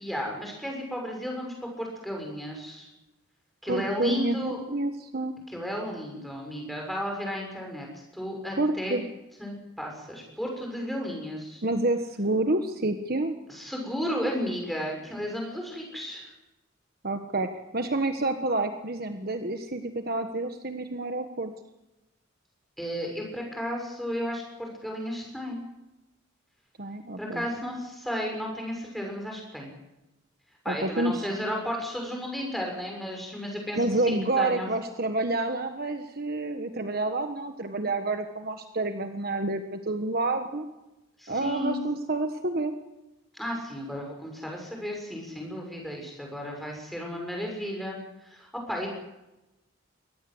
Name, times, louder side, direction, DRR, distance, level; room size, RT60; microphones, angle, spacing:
voice 1, 0.0-2.9 3.6-4.6 5.5-7.9 8.1-9.0 9.4-11.6 13.5-16.3 22.8-25.6 27.2-29.7 30.6-34.7 41.2-41.8 43.3-48.0 48.2-48.9, equal, ahead, 0 dB, 6.7 m, -33 dB
voice 2, 3.7-5.4 8.6-9.0 11.6-13.4 17.0-21.5 26.8-27.4 30.7-31.3 33.8-40.7 41.3-42.7, right 2 dB, 45° right, 6 dB, 1.4 m, -28 dB
23.5 x 18.5 x 8.0 m, 0.99 s
head